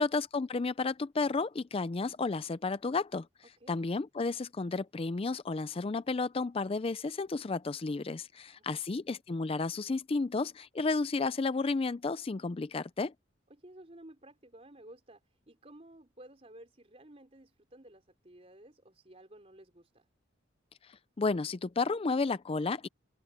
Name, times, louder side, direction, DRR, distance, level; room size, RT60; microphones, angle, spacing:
voice 1, 0.0-3.3 3.7-13.1 21.2-22.9, left 3 dB, 30° left, 0.4 m, -32 dB
voice 2, 8.3-9.0 13.5-20.1, right 1 dB, 30° right, 4.1 m, -54 dB
head